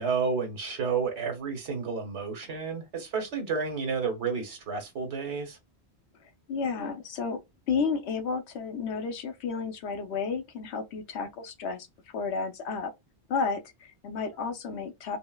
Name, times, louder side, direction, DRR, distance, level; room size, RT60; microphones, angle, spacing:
voice 1, 0.0-5.6, right 5 dB, 85° right, 1.3 m, -31 dB
voice 2, 6.5-7.4 7.7-11.9 12.1-12.9 13.3-15.2, left 5 dB, 75° left, 0.9 m, -32 dB
3.8 x 2.0 x 2.2 m
omnidirectional pair, 1.1 m